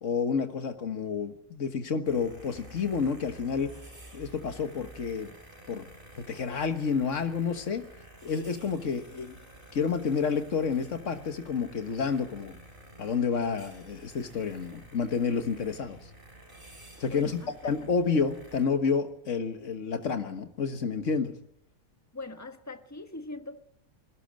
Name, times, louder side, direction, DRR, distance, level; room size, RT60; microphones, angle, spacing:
voice 1, 0.0-3.7 4.1-5.3 5.7-5.9 6.2-7.9 8.2-9.4 9.7-12.6 13.0-16.1 17.0-21.3, left 5 dB, 80° left, 8 dB, 1.8 m, -29 dB
sound 1, 2.0-18.7, right 1 dB, 45° right, 4.3 m, -51 dB
voice 2, 17.1-17.7 22.1-23.6, left 2 dB, 15° left, 7 dB, 1.4 m, -42 dB
21.0 x 17.5 x 7.6 m, 0.80 s
omnidirectional pair, 1.3 m